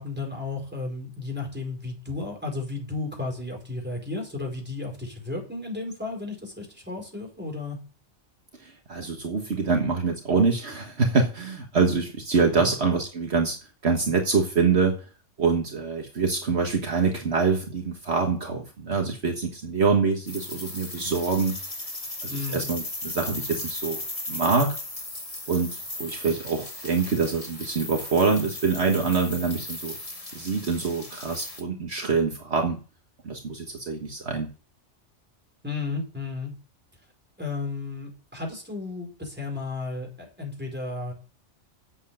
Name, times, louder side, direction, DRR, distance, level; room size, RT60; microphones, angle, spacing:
voice 1, 0.0-7.8 12.6-12.7 22.3-22.6 35.6-36.5 37.4-41.1, left 3 dB, 10° right, 0 dB, 4.6 m, -33 dB
voice 2, 8.6-13.6 13.8-14.9 15.4-21.5 22.2-24.0 24.3-24.7 25.5-30.0 30.3-32.8 33.2-34.5, right 4 dB, 60° right, 3 dB, 1.7 m, -25 dB
sound 1, 20.3-31.6, left 2 dB, 30° left, 2.2 m, -36 dB
8.2 x 7.5 x 8.7 m, 0.38 s
omnidirectional pair, 1.2 m